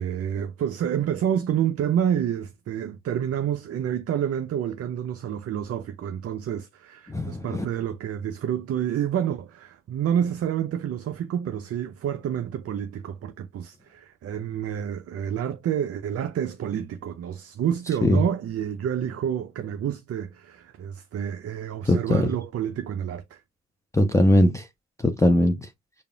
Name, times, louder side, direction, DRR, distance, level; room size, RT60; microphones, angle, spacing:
voice 1, 0.0-23.4, right 9 dB, 35° right, 0.6 m, -28 dB
voice 2, 7.1-7.6 18.0-18.2 21.9-22.3 23.9-24.7 25.0-25.7, left 1 dB, 10° left, 0.7 m, -20 dB
6.6 x 2.5 x 2.3 m
figure-of-eight pair, 45°, 40 cm